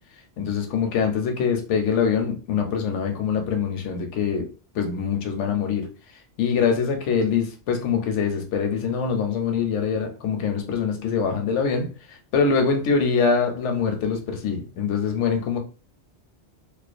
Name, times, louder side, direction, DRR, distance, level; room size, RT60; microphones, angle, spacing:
voice 1, 0.4-4.5 4.7-5.8 6.4-11.9 12.3-15.6, left 6 dB, 85° left, 0.9 m, -24 dB
2.4 x 2.2 x 2.4 m
omnidirectional pair, 1.2 m